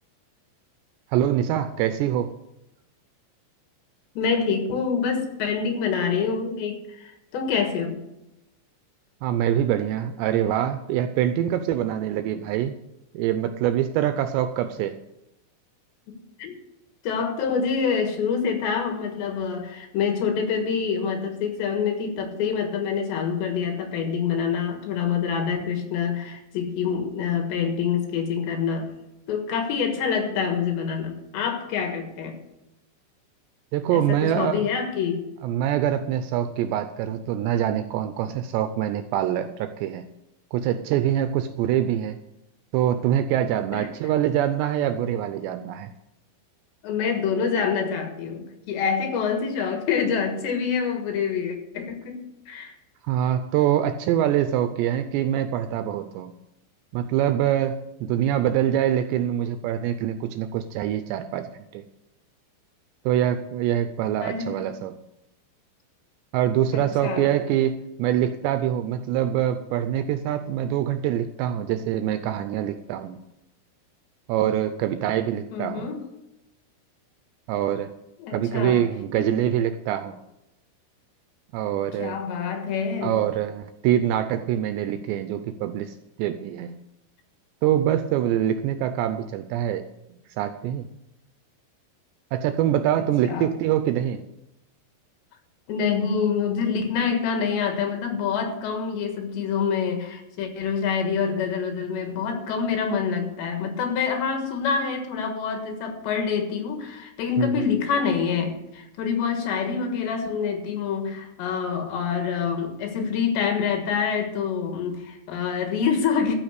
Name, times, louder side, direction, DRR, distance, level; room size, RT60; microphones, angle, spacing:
voice 1, 1.1-2.3 9.2-12.8 13.1-15.0 33.7-34.7 35.4-40.1 40.5-42.2 42.7-45.9 53.1-56.4 56.9-61.5 61.7-61.8 63.1-65.0 66.3-73.2 74.3-75.9 77.5-77.9 78.3-80.2 81.5-82.2 83.0-86.8 87.6-89.8 90.4-90.8 92.3-94.2 107.4-107.7, right 11 dB, 80° right, 9 dB, 2.6 m, -24 dB
voice 2, 4.2-8.0 16.1-16.5 17.0-28.9 29.3-32.4 33.9-35.3 43.7-43.9 46.8-52.7 64.2-64.7 66.7-67.4 75.5-76.1 78.2-78.8 79.1-79.4 82.0-83.2 93.3-93.5 95.7-116.4, left 6 dB, 70° left, 5 dB, 3.6 m, -26 dB
14.0 x 5.8 x 8.1 m, 0.87 s
omnidirectional pair, 5.4 m